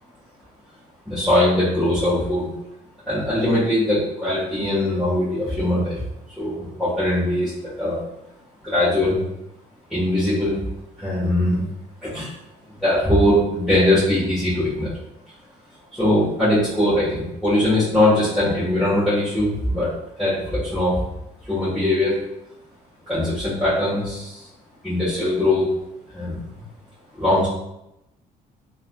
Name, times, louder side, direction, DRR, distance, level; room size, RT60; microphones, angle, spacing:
voice 1, 1.0-2.5 3.1-6.0 6.4-7.5 7.8-8.0 8.6-9.2 9.9-10.6 11.0-11.7 12.0-12.3 12.8-14.9 15.9-19.9 20.2-21.0 21.5-22.2 23.1-24.4 24.8-25.7 26.1-26.4 27.1-27.5, left 1 dB, ahead, -13 dB, 1.3 m, -21 dB
3.5 x 2.3 x 2.2 m, 0.87 s
cardioid pair, 110°, 17 cm